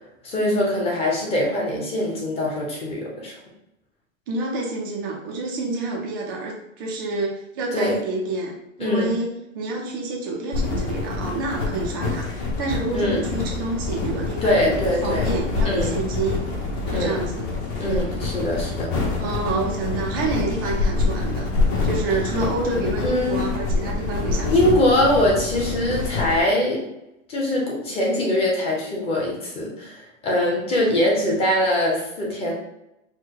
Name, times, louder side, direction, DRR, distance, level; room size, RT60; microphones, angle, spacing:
voice 1, 0.2-3.3 7.7-8.0 8.8-9.2 12.9-13.3 14.4-15.3 15.6-15.9 16.9-17.2 17.8-18.9 23.0-23.5 24.5-26.9 27.3-32.5, left 1 dB, 15° left, -3 dB, 0.8 m, -22 dB
voice 2, 4.3-9.3 9.5-12.3 12.6-16.4 16.9-17.5 17.9-18.1 18.5-18.7 19.2-21.5 21.8-24.8, right 3 dB, 20° right, -2 dB, 0.4 m, -28 dB
sound 1, 10.5-26.4, left 3 dB, 35° left, 1.0 m, -26 dB
4.5 x 2.2 x 4.6 m, 0.88 s
supercardioid pair, 155°, 41 cm